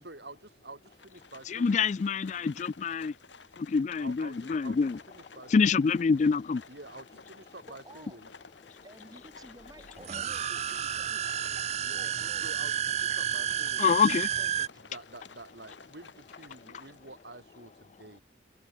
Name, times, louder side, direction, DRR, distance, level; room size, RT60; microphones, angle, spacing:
voice 1, 0.0-1.9 4.0-4.8 5.1-5.5 6.7-8.3 11.8-12.1 12.4-14.3 14.8-18.2, right 2 dB, 65° right, 4.4 m, -48 dB
Livestock farm animals working animals, 0.9-17.3, left 5 dB, 80° left, 3.3 m, -54 dB
voice 2, 1.5-3.1 3.6-5.0 5.5-6.6 13.8-14.3, left 5 dB, 40° left, 0.3 m, -26 dB
voice 3, 7.7-8.2 8.8-11.2 11.9-12.5 14.4-14.8, right 1 dB, 20° right, 2.5 m, -53 dB
sound 1, 10.0-14.7, right 9 dB, 35° right, 0.4 m, -31 dB
head